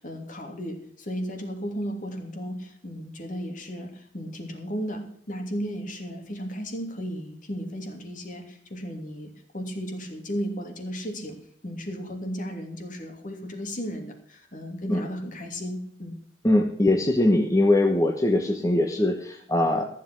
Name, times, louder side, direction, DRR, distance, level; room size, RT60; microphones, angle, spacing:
voice 1, 0.0-11.4 11.6-16.2, equal, 45° left, 4 dB, 2.9 m, -35 dB
voice 2, 16.4-19.9, left 1 dB, 20° left, 2 dB, 1.3 m, -22 dB
14.5 x 7.7 x 6.0 m, 0.64 s
head